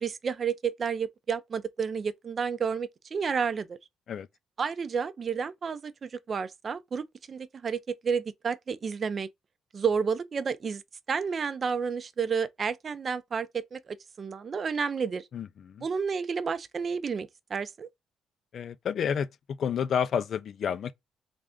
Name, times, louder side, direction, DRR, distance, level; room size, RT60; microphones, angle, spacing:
voice 1, 0.0-3.8 4.6-9.3 9.7-10.8 11.1-15.2 15.8-17.9, right 6 dB, 45° right, 0.5 m, -31 dB
voice 2, 15.3-15.9 18.5-20.9, left 8 dB, 60° left, 0.4 m, -30 dB
3.3 x 2.5 x 3.5 m
cardioid pair, 90°, 0 cm